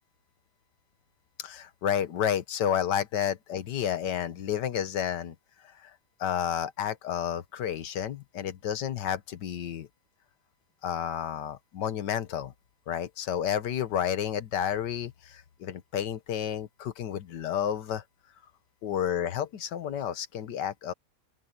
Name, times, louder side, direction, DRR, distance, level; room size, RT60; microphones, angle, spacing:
voice 1, 1.4-5.3 5.6-5.9 6.2-9.9 10.8-12.5 12.9-18.0 18.8-20.9, left 9 dB, 85° left, 1.7 m, -31 dB
open air
omnidirectional pair, 1.8 m